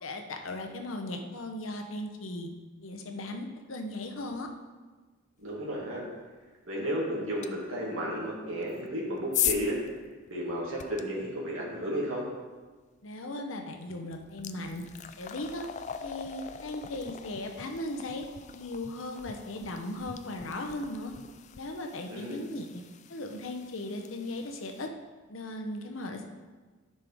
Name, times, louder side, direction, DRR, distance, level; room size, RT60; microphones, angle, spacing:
voice 1, 0.0-2.5 2.8-4.5 13.0-14.8 15.2-15.6 16.0-18.3 18.6-21.1 21.5-22.7 23.1-24.9 25.3-26.3, left 1 dB, 80° left, 4 dB, 0.9 m, -37 dB
voice 2, 5.4-6.0 6.7-9.8 10.3-12.2 22.1-22.4, equal, 85° right, -4 dB, 2.2 m, -33 dB
sound 1, 7.4-7.5 8.6-11.0 13.3-13.5 13.9-24.9, left 10 dB, 35° left, 0.3 m, -39 dB
10.5 x 5.6 x 3.6 m, 1.3 s
head